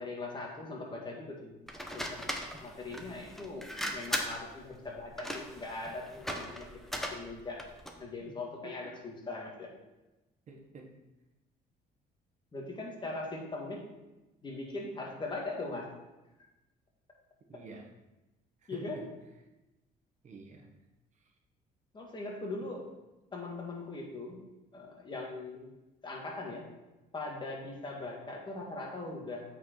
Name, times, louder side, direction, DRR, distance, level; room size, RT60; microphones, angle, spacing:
voice 1, 0.0-1.6 1.9-2.2 2.6-6.7 6.9-7.6 8.0-9.7 12.5-13.8 14.4-15.9 18.7-19.0 21.9-22.9 23.3-24.4 24.7-25.7 26.0-26.7 27.1-29.4, left 2 dB, 25° left, -1 dB, 2.0 m, -40 dB
sound 1, 1.7-8.0, equal, ahead, 0.9 m, -39 dB
voice 2, 10.5-10.9 17.5-17.9 18.6-19.0 20.2-20.7 21.1-21.3 22.6-22.7, right 3 dB, 45° right, 1 dB, 1.4 m, -49 dB
8.2 x 4.7 x 4.6 m, 1.0 s
cardioid pair, 110°, 17 cm